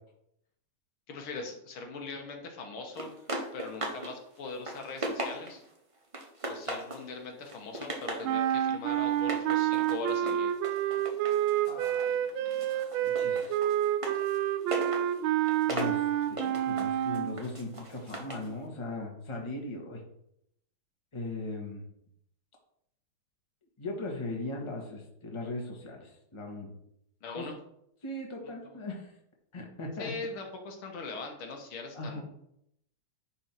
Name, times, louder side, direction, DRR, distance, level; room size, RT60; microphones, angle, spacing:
voice 1, 1.1-3.2 3.5-5.6 6.5-10.5 27.2-27.6 28.4-28.8 30.0-32.3, left 3 dB, 90° left, 2 dB, 2.2 m, -41 dB
sound 1, 3.0-4.1 4.5-5.7 6.1-7.1 7.4-8.3 9.1-12.1 12.5-18.5, right 1 dB, 25° right, 0.8 m, -38 dB
sound 2, 8.2-17.4, right 11 dB, 80° right, 1.4 m, -28 dB
voice 2, 11.7-13.5 15.7-20.0 21.1-21.8 23.8-26.7 27.3-27.4 28.0-29.1 29.5-30.1 31.9-32.3, left 2 dB, 15° left, 0 dB, 1.3 m, -39 dB
10.0 x 4.5 x 4.5 m, 0.75 s
omnidirectional pair, 2.3 m